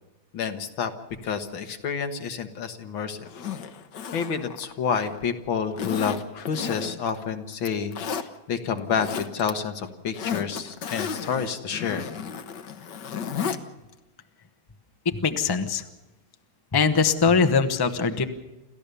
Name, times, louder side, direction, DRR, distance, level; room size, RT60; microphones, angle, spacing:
voice 1, 0.3-0.9 1.2-3.3 4.1-12.1, left 6 dB, 80° left, 7 dB, 2.2 m, -29 dB
Zipper (clothing), 3.2-5.2 5.8-7.2 7.5-8.3 8.8-9.5 9.8-13.6 13.9-14.0, left 6 dB, 65° left, 1.7 m, -33 dB
voice 2, 15.0-15.8 16.7-18.2, left 5 dB, 20° left, 8 dB, 0.7 m, -22 dB
28.5 x 14.0 x 6.9 m, 1.0 s
omnidirectional pair, 2.1 m